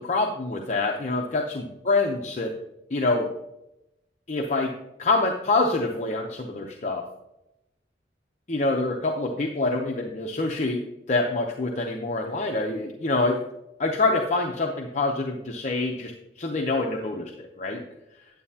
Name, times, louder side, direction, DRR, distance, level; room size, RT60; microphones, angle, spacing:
voice 1, 0.0-2.5 2.9-3.3 4.3-4.7 5.0-7.1 8.5-13.4 13.8-17.8, left 3 dB, 40° left, 1 dB, 0.7 m, -26 dB
9.3 x 8.5 x 2.8 m, 0.88 s
head